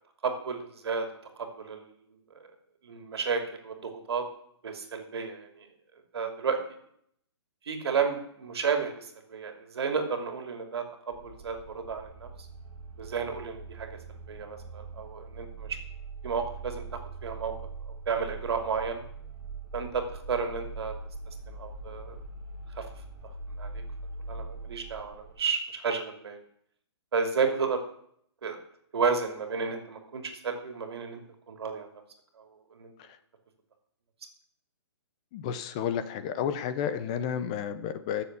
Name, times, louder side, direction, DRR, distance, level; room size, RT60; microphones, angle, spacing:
voice 1, 0.2-1.1 1.4-1.9 2.8-4.2 4.6-5.7 6.1-6.6 7.7-12.3 13.0-13.9 14.3-15.8 16.2-16.8 17.2-17.5 18.1-19.0 19.7-20.9 21.5-22.2 22.8-22.9 23.6-23.8 24.3-26.4 27.1-27.8 28.4-28.6 28.9-31.2 31.5-31.9 32.7-32.9, right 5 dB, 60° right, 5 dB, 2.8 m, -32 dB
sound 1, 11.1-25.4, right 3 dB, 20° right, 2.0 m, -42 dB
voice 2, 35.3-38.2, left 8 dB, 15° left, 11 dB, 0.4 m, -31 dB
14.0 x 7.1 x 8.0 m, 0.68 s
hypercardioid pair, 175°, 15 cm